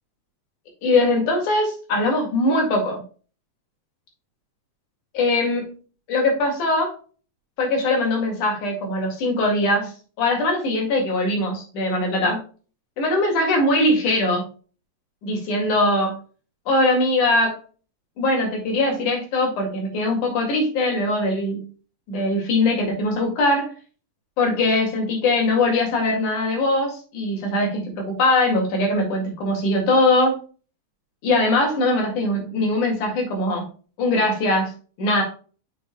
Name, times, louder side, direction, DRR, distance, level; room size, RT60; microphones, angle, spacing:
voice 1, 0.8-3.0 5.1-5.8 6.1-7.0 7.6-9.9 10.2-12.4 13.0-14.4 15.2-16.2 16.7-17.6 18.2-21.7 22.1-23.7 24.4-30.4 31.2-33.7 34.0-34.7 35.0-35.2, left 2 dB, 50° left, 1 dB, 3.2 m, -21 dB
7.2 x 6.7 x 2.2 m, 0.38 s
omnidirectional pair, 4.9 m